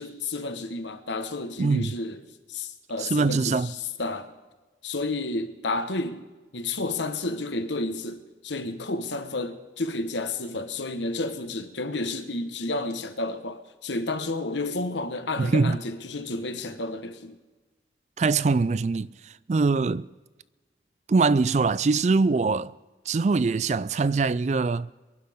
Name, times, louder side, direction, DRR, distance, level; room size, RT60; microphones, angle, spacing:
voice 1, 0.0-2.2 2.5-4.3 4.8-6.2 6.5-17.4, left 2 dB, 85° left, 1.4 m, -31 dB
voice 2, 1.6-1.9 3.0-3.7 15.4-15.8 18.2-20.1 21.1-22.7 23.1-24.9, right 4 dB, 40° right, 0.3 m, -23 dB
25.0 x 11.5 x 3.7 m
head